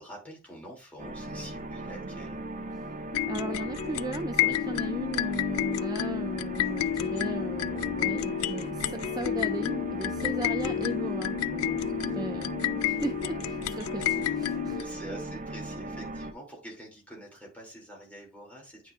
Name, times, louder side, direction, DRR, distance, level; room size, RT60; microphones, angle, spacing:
voice 1, 0.0-2.4 14.2-14.3 14.7-18.9, right 1 dB, 5° left, -2 dB, 2.6 m, -46 dB
sound 1, 1.0-16.3, right 2 dB, 35° right, 0.9 m, -38 dB
sound 2, 3.1-14.8, left 10 dB, 85° left, 0.3 m, -30 dB
voice 2, 3.2-12.5 12.8-14.8, right 2 dB, 20° right, 8 dB, 0.4 m, -37 dB
9.4 x 6.1 x 2.4 m, 0.30 s
head